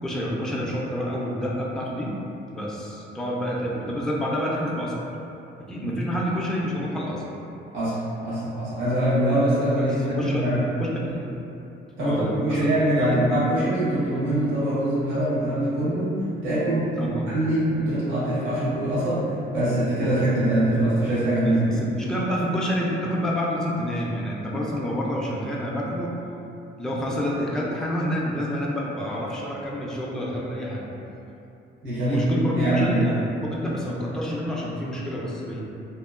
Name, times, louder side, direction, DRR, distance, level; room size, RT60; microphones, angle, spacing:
voice 1, 0.0-2.1 2.5-5.0 5.6-7.2 9.8-10.4 10.8-10.9 12.0-12.7 13.0-13.1 17.0-17.3 21.4-26.2 26.8-30.9 32.0-35.6, equal, 5° left, -4 dB, 0.3 m, -28 dB
voice 2, 8.2-10.6 12.0-16.2 16.4-21.8 31.8-32.2 32.5-33.0, right 1 dB, 80° right, -11 dB, 1.2 m, -23 dB
2.9 x 2.0 x 2.4 m, 2.8 s
cardioid pair, 90°, 20 cm